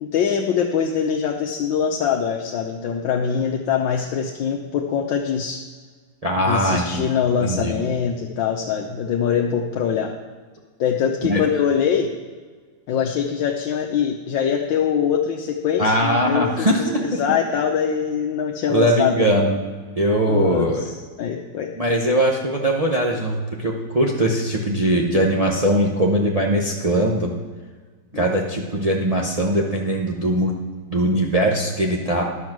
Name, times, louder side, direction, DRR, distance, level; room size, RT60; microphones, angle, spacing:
voice 1, 0.0-5.6 6.5-10.1 10.8-12.1 12.9-19.4 20.3-21.7 28.1-28.2, left 7 dB, 70° left, 2 dB, 1.4 m, -23 dB
voice 2, 6.2-7.0 7.4-7.8 11.2-11.4 15.8-17.4 18.7-19.6 20.0-20.8 21.8-27.3 28.1-30.5 30.9-32.2, right 1 dB, 65° right, -2 dB, 0.3 m, -20 dB
11.0 x 7.2 x 6.0 m, 1.5 s
omnidirectional pair, 2.3 m